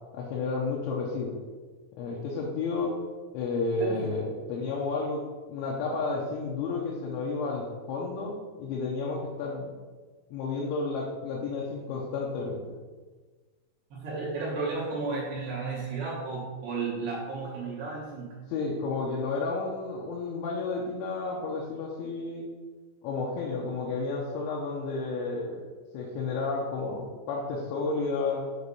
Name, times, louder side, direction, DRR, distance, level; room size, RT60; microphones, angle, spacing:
voice 1, 0.1-1.4 2.0-3.0 3.3-9.7 10.3-12.6 18.5-22.5 23.0-28.4, left 3 dB, 75° left, -3 dB, 3.1 m, -31 dB
voice 2, 13.9-18.3, right 4 dB, 70° right, -5 dB, 2.9 m, -33 dB
8.2 x 3.9 x 5.4 m, 1.4 s
omnidirectional pair, 5.8 m